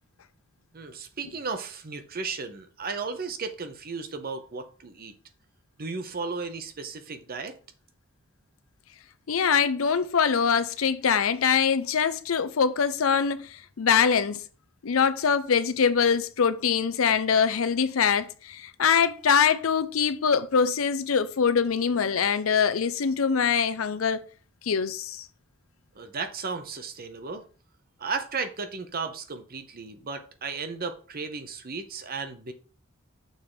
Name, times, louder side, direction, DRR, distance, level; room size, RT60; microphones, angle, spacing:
voice 1, 0.7-5.1 5.8-7.6 26.0-27.5 28.0-32.5, right 4 dB, 45° right, 0.8 m, -35 dB
voice 2, 9.3-14.4 14.8-24.2 24.6-25.3, left 6 dB, 80° left, 0.6 m, -23 dB
6.5 x 3.7 x 4.8 m
head